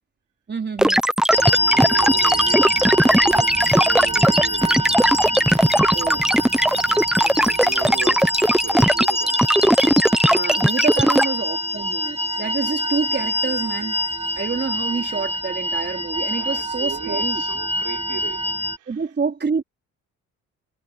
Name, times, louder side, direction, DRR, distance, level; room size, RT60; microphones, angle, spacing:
voice 1, 0.5-1.0 5.9-6.2 7.2-7.5 10.2-14.0 14.4-17.4 18.9-19.6, right 5 dB, 35° right, 4.4 m, -27 dB
sound 1, 0.8-11.2, equal, ahead, 0.9 m, -17 dB
sound 2, 1.3-18.8, equal, 20° right, 2.1 m, -25 dB
voice 2, 1.5-5.0 6.7-7.1 7.4-9.5 10.8-11.3 16.3-18.5 18.8-19.0, right 12 dB, 80° right, 4.2 m, -37 dB
sound 3, 3.3-8.8, left 10 dB, 70° left, 5.0 m, -44 dB
cardioid pair, 90°, 30 cm